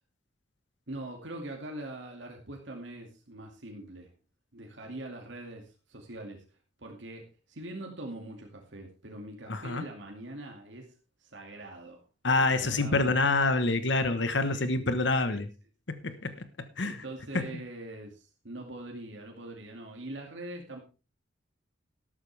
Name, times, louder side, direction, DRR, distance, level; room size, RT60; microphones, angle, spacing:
voice 1, 0.9-4.1 4.5-6.4 6.8-10.9 11.2-12.0 12.3-13.2 14.5-14.6 15.3-15.4 16.8-20.8, right 1 dB, 75° right, 1 dB, 2.4 m, -43 dB
voice 2, 9.5-9.8 12.2-15.5 15.9-17.0 17.3-17.5, left 3 dB, 70° left, 10 dB, 1.2 m, -27 dB
13.0 x 12.5 x 3.4 m, 0.33 s
head